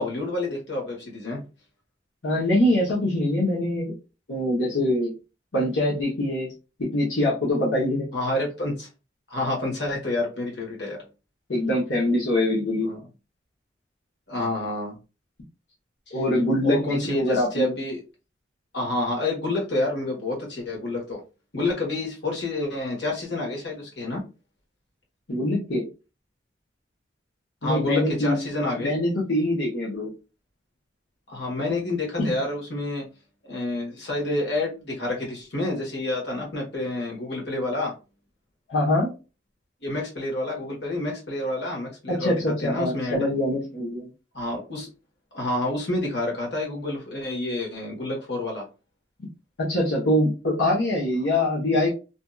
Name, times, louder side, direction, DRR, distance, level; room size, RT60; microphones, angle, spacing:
voice 1, 0.0-1.4 8.1-8.9 9.3-11.0 12.8-13.0 14.3-15.0 16.1-16.2 16.6-18.0 18.7-21.2 21.5-24.2 27.6-29.0 31.3-33.0 33.5-37.9 39.8-43.2 44.3-44.9 45.3-48.6, left 2 dB, 65° left, -2 dB, 1.3 m, -28 dB
voice 2, 2.2-4.0 4.3-5.1 5.5-6.5 6.8-8.1 11.5-12.9 16.1-17.7 25.3-25.9 27.6-28.4 28.8-30.1 32.2-32.3 38.7-39.1 42.1-44.1 49.6-51.9, left 1 dB, 80° left, -5 dB, 1.0 m, -24 dB
2.8 x 2.5 x 2.3 m, 0.30 s
head